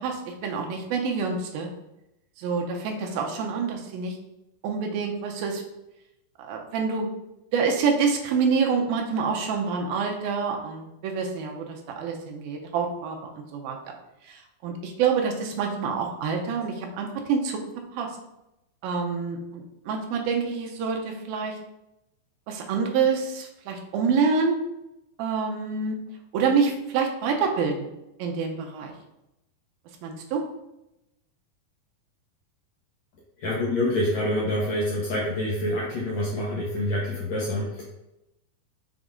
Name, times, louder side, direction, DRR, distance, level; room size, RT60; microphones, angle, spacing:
voice 1, 0.0-1.7 2.4-4.2 4.6-5.6 6.4-7.1 7.5-13.8 14.3-17.6 17.9-18.1 18.8-21.6 22.5-24.6 25.2-26.0 26.3-27.9 28.2-28.9 30.0-30.4, right 5 dB, 75° right, 2 dB, 2.5 m, -27 dB
voice 2, 33.4-37.8, left 1 dB, 75° left, -5 dB, 1.6 m, -26 dB
6.6 x 4.0 x 3.7 m, 0.90 s
omnidirectional pair, 4.5 m